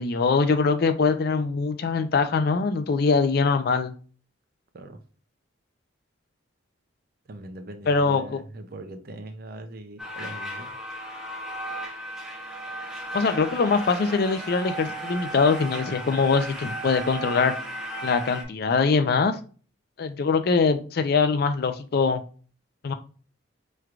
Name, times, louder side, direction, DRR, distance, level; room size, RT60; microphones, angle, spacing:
voice 1, 0.0-3.9 7.9-8.4 13.1-17.5 18.0-19.4 20.0-22.2 22.8-22.9, left 4 dB, 50° left, 0.4 m, -23 dB
voice 2, 7.3-10.7, right 1 dB, 50° right, 0.5 m, -41 dB
sound 1, 10.0-18.4, right 1 dB, 5° right, 0.7 m, -35 dB
4.5 x 3.1 x 2.4 m
head